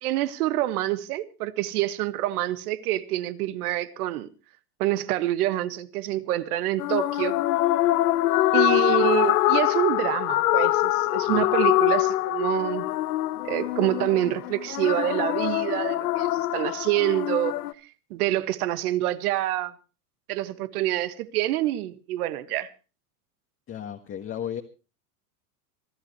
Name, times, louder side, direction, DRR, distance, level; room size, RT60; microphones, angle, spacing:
voice 1, 0.0-4.3 4.8-7.4 8.5-12.9 13.4-17.6 18.1-19.7 20.3-22.7, right 14 dB, 80° right, 1.6 m, -26 dB
sound 1, 6.8-17.7, left 16 dB, 85° left, 1.2 m, -24 dB
voice 2, 23.7-24.6, left 9 dB, 25° left, 1.5 m, -34 dB
26.0 x 14.0 x 3.1 m
supercardioid pair, 130°, 45 cm